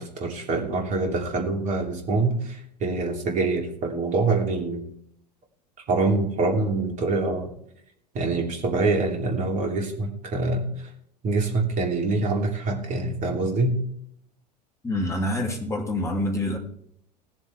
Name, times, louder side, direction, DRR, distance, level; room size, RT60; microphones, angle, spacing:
voice 1, 0.0-4.9 5.9-7.5 8.1-10.6 11.2-13.8, right 3 dB, 35° right, 2 dB, 2.9 m, -25 dB
voice 2, 14.8-16.6, left 1 dB, 15° left, 1 dB, 2.7 m, -26 dB
20.0 x 7.5 x 3.4 m, 0.71 s
figure-of-eight pair, 80°, 21 cm